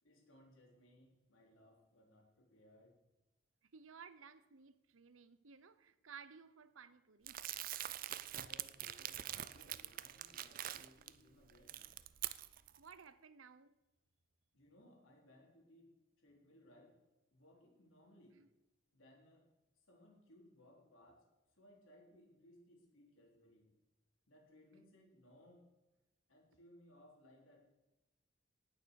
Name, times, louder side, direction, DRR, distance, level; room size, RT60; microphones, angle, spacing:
voice 1, 0.0-3.0 8.4-11.9 14.5-17.0 17.3-18.4 18.9-19.5 19.8-21.3 21.6-23.7 24.3-25.7 26.3-27.6, left 1 dB, 85° left, 4.0 m, -64 dB
voice 2, 3.6-7.4 12.8-13.8 18.3-18.5, right 6 dB, 90° right, 0.8 m, -57 dB
Crumpling crinkling, 7.3-11.1 11.5-12.8, right 12 dB, 45° right, 0.4 m, -44 dB
18.5 x 6.8 x 6.5 m
head